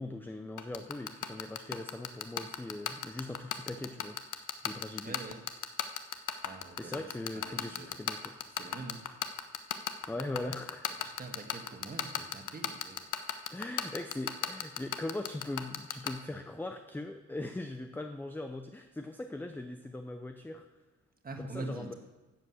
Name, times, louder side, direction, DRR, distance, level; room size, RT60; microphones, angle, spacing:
voice 1, 0.0-4.2 4.6-5.3 6.8-8.4 10.1-10.9 13.5-20.7 21.4-21.9, left 2 dB, 5° left, 6 dB, 0.5 m, -40 dB
sound 1, 0.6-16.1, left 10 dB, 75° left, 0.9 m, -33 dB
voice 2, 5.0-5.4 6.4-7.0 7.3-7.9 8.6-9.0 11.0-13.0 13.6-13.7 21.2-21.9, right 2 dB, 30° right, 4 dB, 1.5 m, -44 dB
12.0 x 7.9 x 7.7 m, 1.2 s
wide cardioid pair, 170°, 31 cm